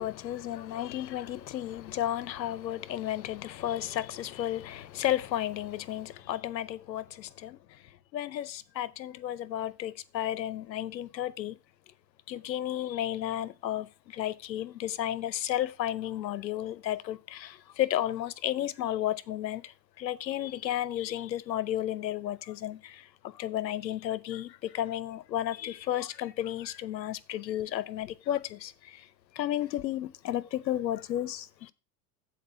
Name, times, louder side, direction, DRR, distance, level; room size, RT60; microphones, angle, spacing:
voice 1, 0.0-7.8 8.1-11.6 12.3-29.1 29.3-31.7, left 12 dB, 85° left, 0.7 m, -33 dB
7.4 x 4.4 x 6.8 m
hypercardioid pair, 80°, 50 cm